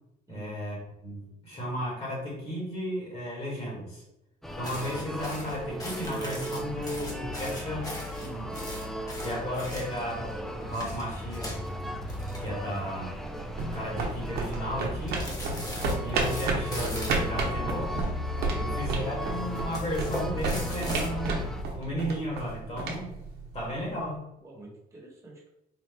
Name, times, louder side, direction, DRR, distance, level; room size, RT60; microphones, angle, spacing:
voice 1, 0.3-4.0 4.5-8.0 9.2-11.6 12.4-13.2 13.5-15.4 16.0-18.0 18.6-21.5 21.8-23.2 23.5-24.3, equal, 40° left, -3 dB, 1.5 m, -34 dB
sound 1, 4.4-21.6, left 1 dB, ahead, 0.4 m, -36 dB
sound 2, 4.6-10.2 10.6-12.9 13.2-13.4 13.8-14.3 15.1-17.3 18.0-18.8 19.6-21.1, left 1 dB, 20° left, 1.2 m, -40 dB
voice 2, 8.2-8.6 18.5-18.9 24.4-25.5, right 2 dB, 15° right, -3 dB, 1.3 m, -45 dB
sound 3, 13.1-23.9, right 3 dB, 70° right, 0.9 m, -32 dB
4.2 x 2.4 x 3.4 m, 0.87 s
cardioid pair, 110°, 17 cm